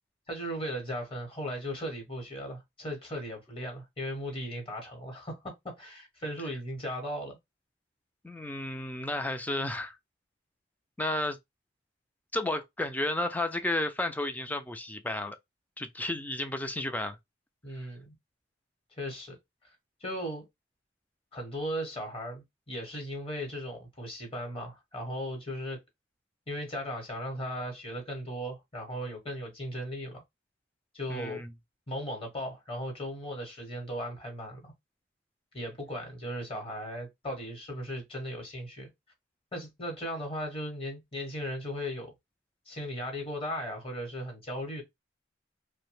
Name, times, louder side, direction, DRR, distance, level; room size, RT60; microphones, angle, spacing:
voice 1, 0.3-7.4 17.6-18.1 19.0-19.4 20.0-20.5 21.3-25.8 26.5-30.2 30.9-31.4 31.9-34.7 35.5-38.9 39.5-42.1 42.7-44.8, equal, 30° left, 1.0 m, -37 dB
voice 2, 8.2-10.0 11.0-11.4 12.3-15.4 15.8-17.2 31.1-31.5, left 1 dB, 10° left, 0.3 m, -32 dB
2.7 x 2.1 x 3.0 m
head